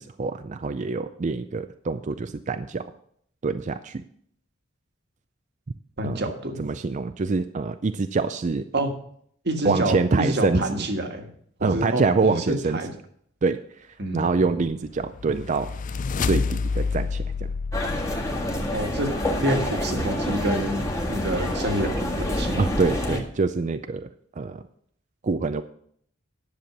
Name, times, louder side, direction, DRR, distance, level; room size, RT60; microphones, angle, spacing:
voice 1, 0.0-2.9 3.4-4.0 6.0-6.2 6.6-8.6 9.6-10.6 11.6-12.8 13.4-13.6 14.1-15.7 16.2-17.2 22.6-24.1 24.4-24.6 25.2-25.6, right 4 dB, 35° right, 10 dB, 0.4 m, -25 dB
voice 2, 6.0-6.6 8.7-8.9 9.4-11.3 11.6-12.9 14.0-14.2 18.7-19.1 19.4-22.6, right 1 dB, 55° right, 5 dB, 1.6 m, -27 dB
sound 1, 14.7-18.9, left 4 dB, 40° left, 0.4 m, -29 dB
sound 2, 17.7-23.2, left 1 dB, 15° left, 1.6 m, -27 dB
10.5 x 6.9 x 6.1 m, 0.64 s
head